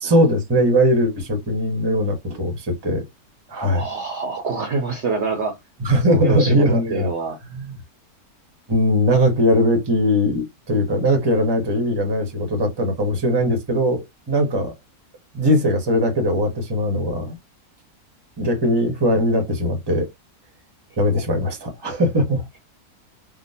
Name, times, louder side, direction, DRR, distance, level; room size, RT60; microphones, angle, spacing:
voice 1, 0.0-3.0 3.5-3.8 5.8-7.1 7.4-7.7 8.7-14.7 15.3-17.4 18.4-20.1 21.0-22.5, equal, 20° right, 0.8 m, -20 dB
voice 2, 3.7-5.6 6.1-7.4, right 4 dB, 55° right, 0.9 m, -26 dB
3.6 x 2.3 x 2.7 m
omnidirectional pair, 1.6 m